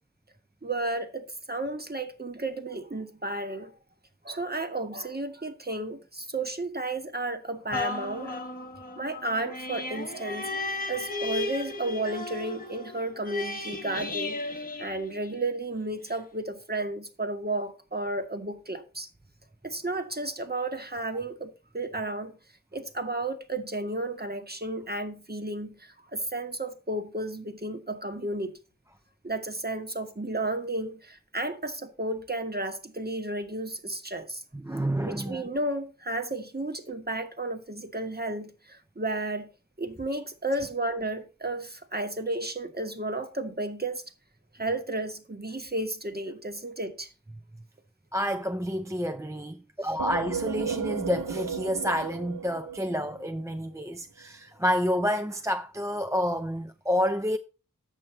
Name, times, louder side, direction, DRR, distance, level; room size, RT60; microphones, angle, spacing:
voice 1, 0.6-3.7 4.2-8.4 9.0-10.5 10.9-14.4 14.8-19.1 19.6-22.3 22.7-28.6 29.2-34.4 35.0-39.5 39.8-44.0 44.5-47.1, right 2 dB, 30° right, 1.3 m, -33 dB
sound 1, 7.7-15.6 16.1-16.2, left 2 dB, 25° left, 1.0 m, -35 dB
voice 2, 34.5-35.5 48.1-57.4, equal, 10° right, 0.4 m, -29 dB
sound 2, 50.0-53.6, right 7 dB, 70° right, 0.5 m, -34 dB
7.6 x 6.3 x 4.3 m
wide cardioid pair, 45°, 33 cm